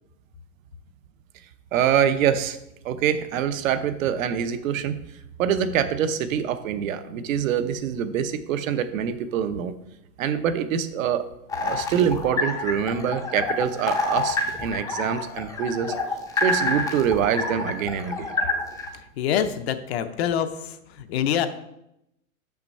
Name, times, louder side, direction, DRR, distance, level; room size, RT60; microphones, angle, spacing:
voice 1, 1.7-2.6 2.8-5.0 5.4-9.7 10.2-11.2 11.6-15.9 16.4-18.4, right 8 dB, 65° right, 10 dB, 0.9 m, -25 dB
sound 1, 11.5-18.9, left 3 dB, 10° left, 0.5 m, -27 dB
voice 2, 18.9-21.5, left 9 dB, 45° left, 9 dB, 0.6 m, -26 dB
6.2 x 5.9 x 5.3 m, 0.82 s
supercardioid pair, 165°, 43 cm